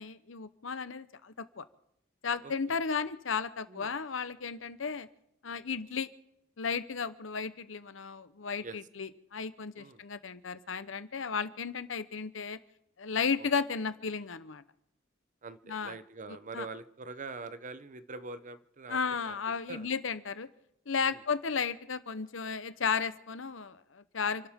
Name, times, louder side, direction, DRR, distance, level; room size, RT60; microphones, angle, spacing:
voice 1, 0.0-1.6 2.2-5.1 5.4-6.1 6.6-12.6 13.0-14.6 15.7-16.0 16.3-16.7 18.9-20.5 20.9-24.5, left 5 dB, 75° left, 13 dB, 0.9 m, -34 dB
voice 2, 2.4-2.8 3.7-3.9 8.6-8.8 9.8-10.0 13.4-13.5 15.4-19.0 19.2-19.4 19.7-19.9 21.0-21.2, right 3 dB, 40° right, 13 dB, 0.7 m, -44 dB
29.5 x 12.0 x 3.6 m, 0.77 s
head